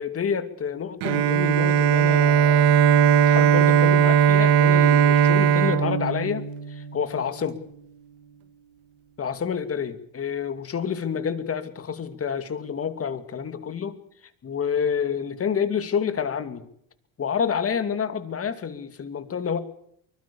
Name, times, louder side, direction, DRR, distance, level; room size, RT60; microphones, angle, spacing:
voice 1, 0.0-2.7 3.3-7.6 9.2-14.0 14.4-16.7 17.2-19.6, left 7 dB, 35° left, 11 dB, 2.6 m, -28 dB
Bowed string instrument, 1.0-7.0, right 8 dB, 80° right, 1.7 m, -18 dB
24.0 x 21.0 x 7.1 m, 0.68 s
cardioid pair, 110°, 39 cm